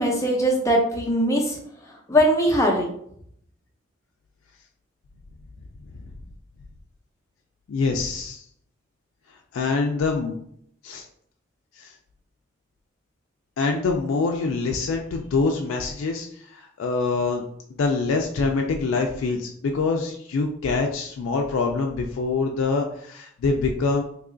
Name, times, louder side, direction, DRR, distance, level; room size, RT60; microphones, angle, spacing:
voice 1, 0.0-1.6 2.1-2.9, equal, 15° left, 0 dB, 0.5 m, -20 dB
voice 2, 7.7-8.4 9.5-10.3 10.8-11.0 11.8-11.9 13.6-17.4 17.8-24.0, left 4 dB, 80° left, 2 dB, 0.3 m, -25 dB
2.9 x 2.3 x 3.7 m, 0.68 s
head